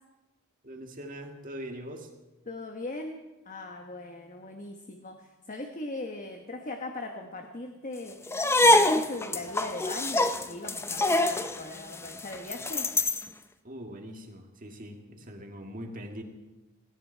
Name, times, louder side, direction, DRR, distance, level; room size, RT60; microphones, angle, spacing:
voice 1, 0.6-2.1 13.6-16.2, equal, 40° right, 4 dB, 1.9 m, -42 dB
voice 2, 2.5-8.2 8.6-12.9, left 2 dB, 35° left, 4 dB, 1.1 m, -39 dB
sound 1, 8.3-13.3, left 1 dB, 10° left, 0.6 m, -25 dB
18.0 x 16.5 x 4.5 m, 1.1 s
head